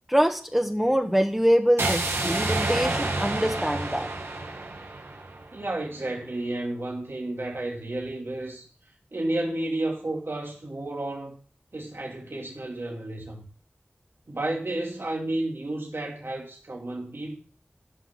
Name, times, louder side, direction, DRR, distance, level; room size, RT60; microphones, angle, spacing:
voice 1, 0.1-4.1, equal, 5° right, 1.3 m, -24 dB
sound 1, 1.8-5.8, right 2 dB, 90° right, 1.8 m, -29 dB
voice 2, 5.5-8.7 9.1-11.4 11.7-13.4 14.3-17.4, right 1 dB, 70° right, 2.5 m, -31 dB
11.5 x 5.8 x 5.9 m
wide cardioid pair, 55°, 4 cm